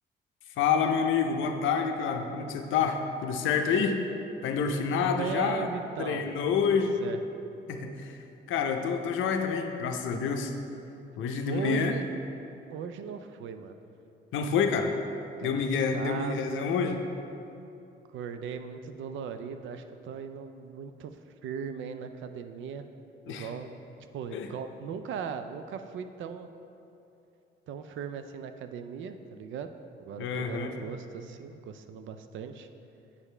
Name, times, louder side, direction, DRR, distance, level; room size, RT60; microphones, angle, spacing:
voice 1, 0.6-4.0 4.4-5.7 6.0-7.0 7.7-8.2 8.5-10.5 11.2-11.9 14.3-15.0 15.4-17.0 23.3-23.5 24.3-24.5 30.2-30.7, left 6 dB, 80° left, 5 dB, 0.6 m, -28 dB
voice 2, 4.9-6.3 6.7-7.2 11.5-12.0 12.7-13.8 15.4-15.6 15.9-16.7 18.1-22.9 23.3-23.8 24.1-26.5 27.7-29.7 30.0-32.7, right 7 dB, 75° right, 9 dB, 0.4 m, -38 dB
8.3 x 4.9 x 3.3 m, 2.8 s
cardioid pair, 90°, 20 cm